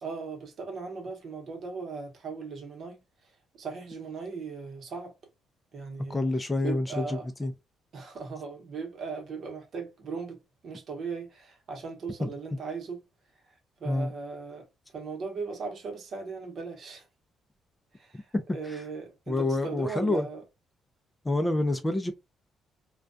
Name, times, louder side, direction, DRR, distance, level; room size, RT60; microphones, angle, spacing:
voice 1, 0.0-3.0 3.5-5.1 5.7-6.3 6.6-7.3 7.9-13.0 13.8-17.0 17.9-20.4, right 4 dB, 60° right, 0.9 m, -38 dB
voice 2, 6.1-7.5 12.2-12.3 13.8-14.1 18.3-18.8 19.3-20.3 21.2-22.1, left 2 dB, 15° left, 0.4 m, -28 dB
2.3 x 2.2 x 2.5 m
cardioid pair, 90°, 0 cm